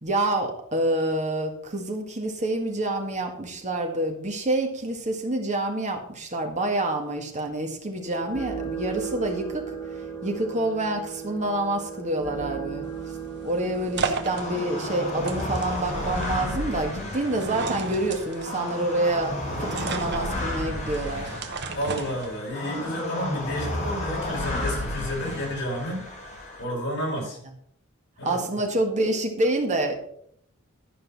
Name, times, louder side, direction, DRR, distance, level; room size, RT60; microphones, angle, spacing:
voice 1, 0.0-9.7 10.2-12.9 13.4-21.4 28.2-29.9, right 1 dB, 35° right, 3 dB, 1.7 m, -27 dB
sound 1, 8.0-15.5, right 6 dB, 15° left, 2.2 m, -36 dB
sound 2, 12.8-22.7, right 4 dB, 55° right, 1.0 m, -35 dB
sound 3, 14.3-26.6, left 1 dB, 35° left, 2.7 m, -32 dB
voice 2, 21.7-26.1 26.6-27.4 28.2-28.4, equal, 55° left, -3 dB, 4.6 m, -31 dB
11.5 x 5.4 x 5.5 m, 0.66 s
head